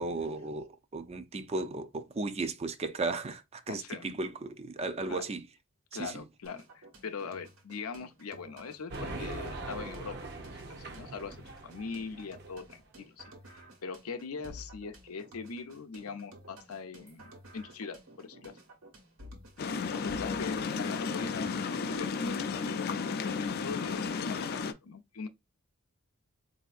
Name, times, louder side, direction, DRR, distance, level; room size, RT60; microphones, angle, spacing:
voice 1, 0.0-5.4 6.0-6.2, right 3 dB, 30° right, 0.4 m, -35 dB
voice 2, 3.7-4.2 5.1-5.2 5.9-10.2 10.5-11.4 11.6-18.5 19.9-25.3, left 5 dB, 90° left, 0.6 m, -41 dB
sound 1, 6.4-22.4, equal, 80° right, 1.3 m, -53 dB
sound 2, 8.9-12.7, right 2 dB, 50° right, 0.7 m, -42 dB
sound 3, 19.6-24.7, left 5 dB, 45° left, 0.4 m, -33 dB
4.2 x 2.7 x 2.3 m
head